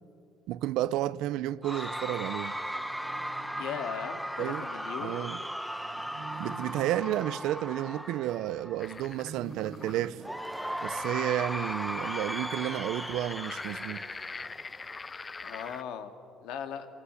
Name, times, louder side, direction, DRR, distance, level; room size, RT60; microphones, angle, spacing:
voice 1, 0.5-2.5 4.4-4.7 5.0-5.4 6.4-10.2 10.8-14.0, right 13 dB, 75° right, 0.6 m, -32 dB
Cheering / Crowd, 1.6-8.9 10.2-14.9, equal, ahead, 1.2 m, -37 dB
sound 1, 2.6-4.7 5.8-8.5 9.0-11.3, right 5 dB, 60° right, 1.5 m, -48 dB
voice 2, 3.6-5.2 15.4-16.1 16.4-16.9, left 8 dB, 80° left, 2.3 m, -38 dB
sound 2, 8.8-15.8, left 4 dB, 25° left, 0.6 m, -43 dB
26.5 x 21.0 x 9.9 m
cardioid pair, 120°, 0 cm